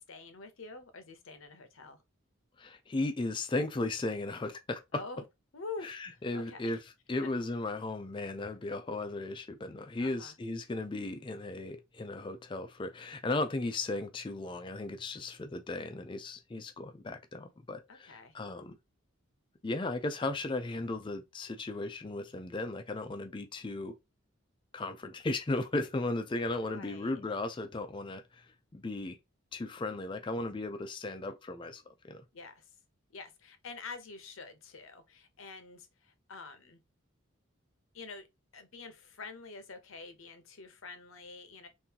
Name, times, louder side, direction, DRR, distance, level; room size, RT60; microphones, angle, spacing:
voice 1, 0.0-2.0 4.9-5.2 5.5-6.0 6.3-6.9 10.0-10.3 17.9-18.3 26.6-27.2 32.3-32.7 33.1-36.8 37.9-38.3 38.5-41.7, left 4 dB, 75° left, 0.8 m, -46 dB
voice 2, 2.6-5.0 5.8-6.8 7.1-18.8 19.6-23.9 24.7-28.4 28.7-29.2 29.5-32.2, left 2 dB, 25° left, 0.4 m, -36 dB
3.7 x 2.6 x 2.8 m
head